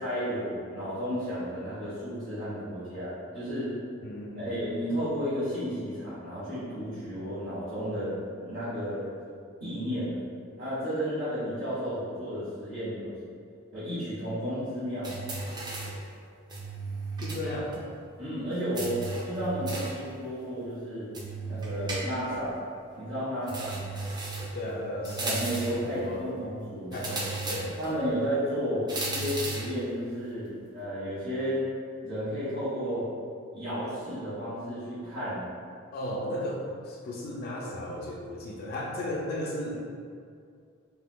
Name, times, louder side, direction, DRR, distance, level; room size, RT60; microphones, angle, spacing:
voice 1, 0.0-3.7 4.4-8.1 8.4-9.2 9.6-10.2 10.6-13.1 13.7-15.1 17.2-17.3 18.2-21.1 21.5-22.6 22.9-23.9 25.2-26.9 27.8-31.6 32.0-33.1 33.5-35.4, equal, 50° right, -16 dB, 1.2 m, -32 dB
voice 2, 4.0-4.6 17.2-17.8 24.5-25.2 25.7-26.3 26.9-27.8 35.9-39.8, left 1 dB, 45° left, -2 dB, 0.4 m, -35 dB
sound 1, 15.0-16.0 16.5-17.5 17.7-17.8 18.7-20.0 21.1-22.4 23.5-24.6 25.0-25.8 26.9-27.9 28.9-29.8, right 3 dB, 20° right, 0.4 m, -35 dB
3.4 x 2.8 x 2.2 m, 2.2 s
head